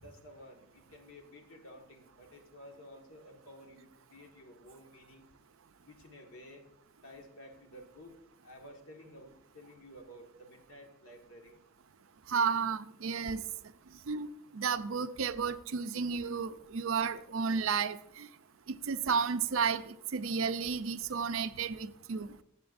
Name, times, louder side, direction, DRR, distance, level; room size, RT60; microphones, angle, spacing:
voice 1, 0.0-5.3 5.8-6.6 7.0-8.2 8.4-11.6, equal, 70° left, 1.6 m, -53 dB
voice 2, 12.3-13.4 14.1-14.3 14.5-18.3 18.7-22.3, right 6 dB, 70° right, 0.5 m, -32 dB
14.5 x 8.0 x 2.6 m
head